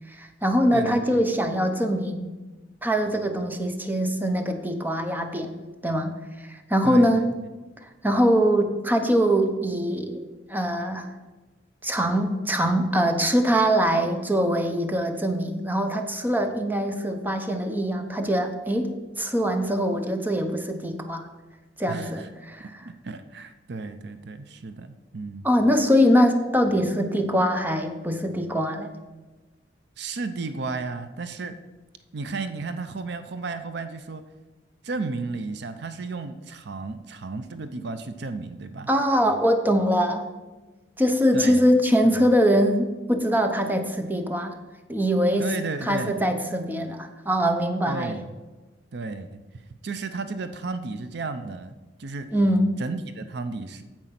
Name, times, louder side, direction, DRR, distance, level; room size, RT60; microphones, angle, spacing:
voice 1, 0.2-2.3 2.8-5.5 5.8-6.2 6.5-7.2 8.0-10.2 10.5-11.1 11.8-21.3 21.8-22.7 25.4-28.9 38.9-40.2 41.0-44.6 44.9-45.5 45.8-48.2 52.3-52.8, equal, 10° right, 6 dB, 0.8 m, -23 dB
voice 2, 0.7-1.2 6.8-7.3 21.9-22.3 22.8-25.5 30.0-31.6 32.1-34.2 34.8-38.9 41.3-41.6 42.0-42.2 45.4-46.2 47.9-48.3 48.9-49.4 49.8-51.7 52.0-52.3 52.8-53.8, right 3 dB, 65° right, 10 dB, 0.6 m, -33 dB
9.0 x 7.5 x 5.8 m, 1.2 s
head